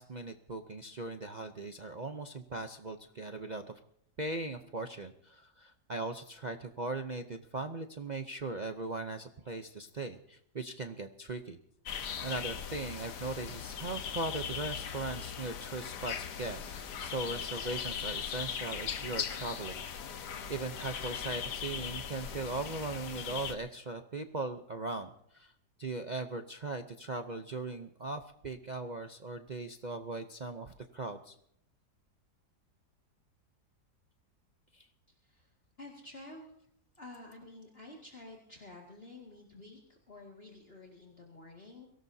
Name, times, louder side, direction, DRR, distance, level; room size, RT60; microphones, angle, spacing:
voice 1, 0.0-3.6 4.2-11.6 12.2-19.8 20.5-25.5 25.8-31.4 34.7-34.9, right 2 dB, 45° right, 6 dB, 0.5 m, -39 dB
sound 1, 11.9-23.5, left 8 dB, 80° left, 1.6 m, -39 dB
voice 2, 35.8-36.5 37.0-41.9, left 2 dB, 35° left, -1 dB, 2.4 m, -50 dB
23.0 x 17.5 x 2.7 m, 0.71 s
omnidirectional pair, 1.8 m